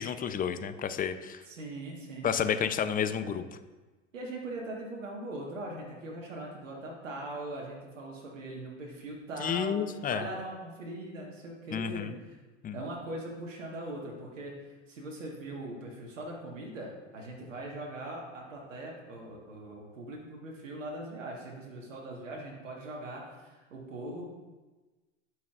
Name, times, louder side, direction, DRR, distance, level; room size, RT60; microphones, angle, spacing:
voice 1, 0.0-1.4 2.2-3.4 9.4-10.3 11.7-12.2 12.6-12.8, left 8 dB, 25° left, 11 dB, 0.5 m, -31 dB
voice 2, 1.5-2.6 3.2-3.4 4.1-9.8 10.0-12.3 12.7-24.3, right 1 dB, 85° right, -2 dB, 1.5 m, -41 dB
12.5 x 6.2 x 2.4 m, 1.2 s
hypercardioid pair, 80°, 37 cm